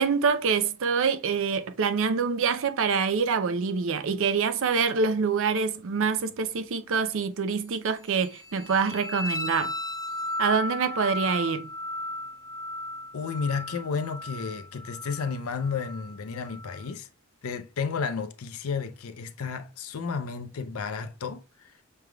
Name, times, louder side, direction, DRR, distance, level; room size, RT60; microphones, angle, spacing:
voice 1, 0.0-9.7 10.4-11.7, right 5 dB, 65° right, 0.5 m, -25 dB
sound 1, 8.1-16.9, left 1 dB, 15° left, 0.4 m, -35 dB
voice 2, 13.1-17.1 17.4-21.4, left 5 dB, 85° left, 0.5 m, -32 dB
6.0 x 3.3 x 2.2 m
head